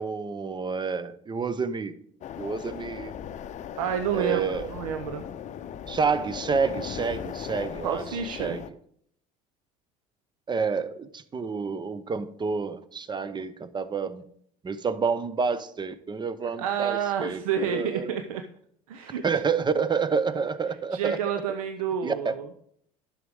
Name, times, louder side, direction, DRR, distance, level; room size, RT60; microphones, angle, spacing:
voice 1, 0.0-1.9 2.4-3.1 4.1-4.7 5.9-8.6 10.5-14.2 14.6-18.2 19.2-21.2 22.0-22.3, right 5 dB, 25° right, 14 dB, 0.7 m, -29 dB
sound 1, 2.2-8.7, left 9 dB, 40° left, 0.6 m, -38 dB
voice 2, 3.8-4.4 4.7-5.2 7.8-8.6 16.6-18.4 18.9-19.2 20.9-22.5, right 8 dB, 80° right, 8 dB, 0.6 m, -29 dB
11.0 x 6.4 x 3.5 m, 0.65 s
hypercardioid pair, 75°, 18 cm